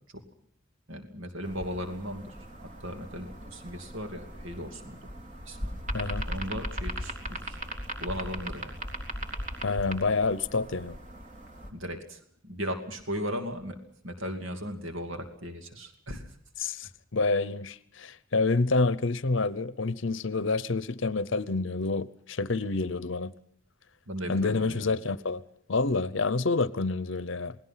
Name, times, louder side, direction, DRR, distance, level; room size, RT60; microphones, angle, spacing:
voice 1, 0.9-5.1 5.5-5.7 6.2-7.6 8.0-8.8 11.7-13.8 14.0-16.4 24.1-25.0, equal, 70° right, 2.7 m, -37 dB
sound 1, 1.4-11.7, equal, 35° right, 3.6 m, -38 dB
voice 2, 5.9-6.3 9.6-11.0 16.6-23.3 24.3-25.4 25.7-27.6, left 3 dB, 65° left, 0.8 m, -28 dB
28.0 x 19.5 x 5.8 m
head